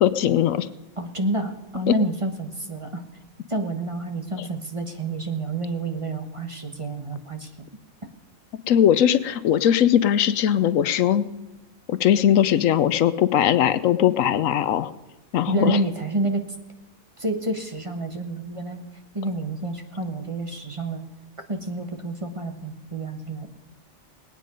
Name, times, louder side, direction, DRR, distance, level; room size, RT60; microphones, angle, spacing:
voice 1, 0.0-0.7 1.9-2.0 8.7-11.3 11.9-14.9 15.3-15.8, left 10 dB, 80° left, 14 dB, 1.0 m, -20 dB
voice 2, 1.0-3.0 3.5-7.5 15.5-16.4 17.2-18.8 19.1-21.0 21.5-23.5, right 2 dB, 25° right, 5 dB, 1.3 m, -29 dB
20.0 x 9.2 x 5.2 m, 1.0 s
omnidirectional pair, 1.4 m